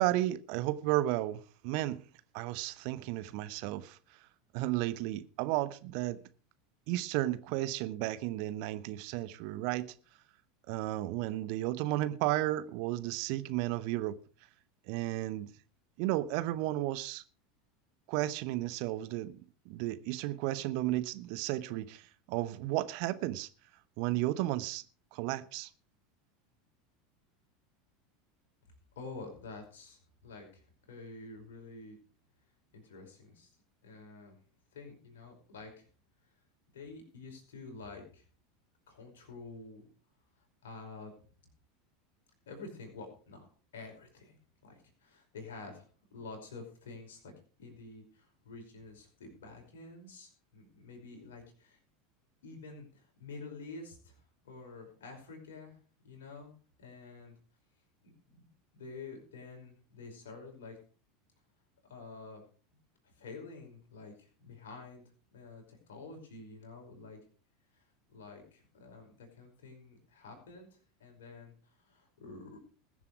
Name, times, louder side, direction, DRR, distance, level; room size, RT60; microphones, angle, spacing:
voice 1, 0.0-2.0 2.3-4.0 4.5-6.2 6.9-9.9 10.7-14.2 14.9-15.5 16.0-17.2 18.1-19.3 19.7-22.0 22.3-23.5 24.0-24.8 25.1-25.7, right 16 dB, 50° right, 0.9 m, -33 dB
voice 2, 29.0-32.0 32.7-33.5 33.8-34.4 34.7-35.9 36.7-38.2 38.9-39.9 40.6-41.3 42.5-43.5 43.7-44.4 44.6-47.3 47.6-51.8 52.4-54.2 54.4-55.8 56.0-56.5 56.8-57.4 58.0-60.8 61.8-62.4 63.2-67.2 67.7-72.6, left 3 dB, 65° left, 5.3 m, -49 dB
20.5 x 7.5 x 4.8 m
figure-of-eight pair, 80°, 0 cm